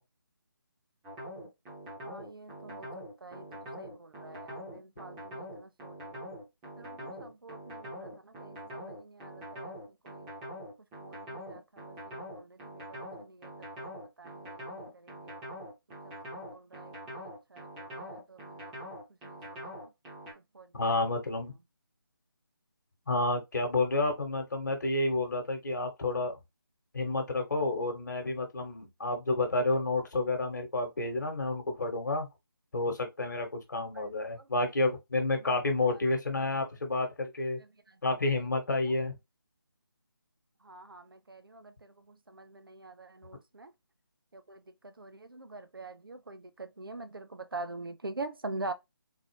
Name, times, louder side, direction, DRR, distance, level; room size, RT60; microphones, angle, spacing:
sound 1, 1.0-20.3, equal, 10° right, 0.9 m, -43 dB
voice 1, 2.0-3.5 3.8-6.3 6.8-9.8 10.0-10.3 11.0-13.5 13.8-15.4 16.0-18.7 19.2-19.9 20.5-20.7 33.9-34.7 35.3-35.5 35.9-36.0 37.6-38.0 38.8-38.9 40.6-43.7 44.3-48.7, right 2 dB, 70° right, 0.6 m, -45 dB
voice 2, 20.7-21.5 23.1-26.4 26.9-32.3 32.7-37.6 38.0-39.1, left 2 dB, 50° left, 1.2 m, -30 dB
3.9 x 2.5 x 3.1 m
figure-of-eight pair, 155°, 12 cm